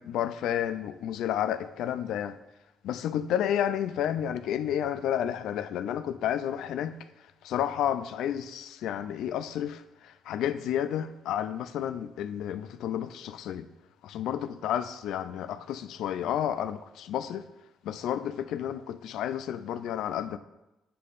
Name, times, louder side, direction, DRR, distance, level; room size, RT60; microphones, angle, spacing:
voice 1, 0.0-2.4 2.8-7.0 7.4-13.7 14.0-17.5 17.8-20.4, left 10 dB, 85° left, 0.3 m, -31 dB
8.3 x 7.4 x 2.5 m
cardioid pair, 90°, 0 cm